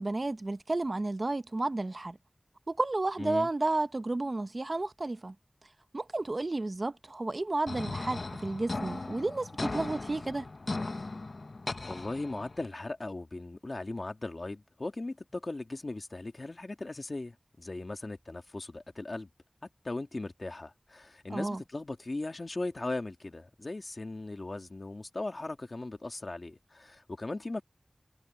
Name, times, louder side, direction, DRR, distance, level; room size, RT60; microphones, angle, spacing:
voice 1, 0.0-2.2 2.7-5.3 5.9-10.5 21.3-21.6, right 2 dB, 65° right, 0.9 m, -32 dB
voice 2, 3.2-3.5 11.9-19.3 19.8-27.6, left 2 dB, 70° left, 2.4 m, -38 dB
sound 1, 7.7-12.7, left 3 dB, 90° left, 1.1 m, -37 dB
wide cardioid pair, 45°, 0 cm